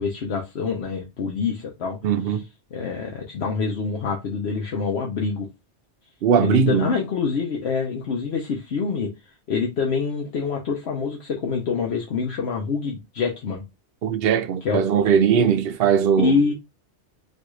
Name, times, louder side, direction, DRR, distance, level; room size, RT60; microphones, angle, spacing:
voice 1, 0.0-2.0 2.2-2.4 2.7-5.5 6.4-9.1 9.5-13.6 14.6-14.8 15.1-15.5 16.2-16.5, left 5 dB, 65° left, 1.0 m, -26 dB
voice 2, 2.0-2.4 6.2-6.9 14.0-16.3, right 7 dB, 65° right, 0.7 m, -20 dB
4.1 x 2.5 x 3.0 m
omnidirectional pair, 1.2 m